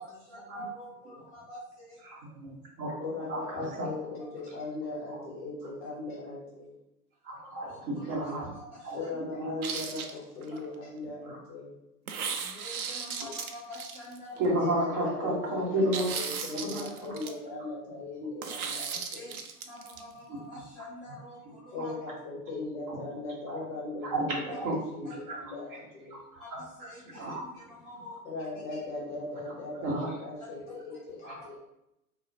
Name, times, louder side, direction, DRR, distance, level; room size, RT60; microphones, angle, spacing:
voice 1, 0.0-2.2 5.8-5.9 7.5-9.1 10.5-10.6 12.4-14.5 18.9-19.4 19.7-21.9 26.4-28.2, equal, 10° right, -13 dB, 0.4 m, -47 dB
voice 2, 2.0-3.9 5.1-5.2 7.2-8.5 8.8-9.5 11.2-11.4 14.4-16.1 16.5-17.3 20.3-20.6 21.8-21.9 22.9-23.0 23.5-23.6 24.0-25.4 26.1-26.6 27.1-27.8 29.8-30.2 31.2-31.4, right 1 dB, 35° right, -3 dB, 1.1 m, -33 dB
voice 3, 3.0-6.7 8.9-11.8 14.5-19.4 21.7-24.5 24.9-26.2 28.2-31.6, left 3 dB, 20° left, -4 dB, 0.7 m, -38 dB
sound 1, 9.6-10.6 12.1-14.4 15.9-17.3 18.4-20.0, right 6 dB, 65° right, 0.6 m, -36 dB
4.0 x 2.1 x 2.7 m, 0.86 s
figure-of-eight pair, 110°, 47 cm